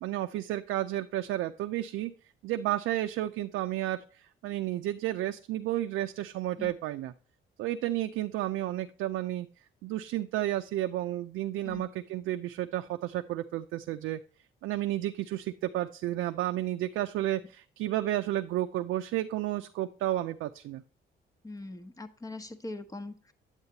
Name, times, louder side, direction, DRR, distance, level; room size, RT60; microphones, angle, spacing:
voice 1, 0.0-2.1 2.4-7.1 7.6-9.5 9.8-14.2 14.6-20.8, right 14 dB, 85° right, 6 dB, 0.5 m, -32 dB
voice 2, 21.4-23.3, left 2 dB, 15° left, 9 dB, 0.9 m, -41 dB
8.9 x 8.0 x 2.7 m, 0.39 s
cardioid pair, 90°, 20 cm